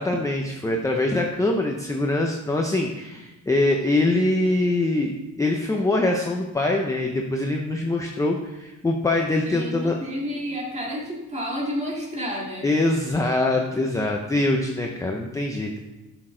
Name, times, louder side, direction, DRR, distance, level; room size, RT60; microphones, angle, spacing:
voice 1, 0.0-5.1 5.4-10.0 12.6-15.8, left 2 dB, 10° left, 1 dB, 0.5 m, -23 dB
voice 2, 9.5-12.7, equal, 20° right, -2 dB, 1.9 m, -30 dB
12.0 x 6.2 x 3.8 m, 1.1 s
cardioid pair, 180°, 32 cm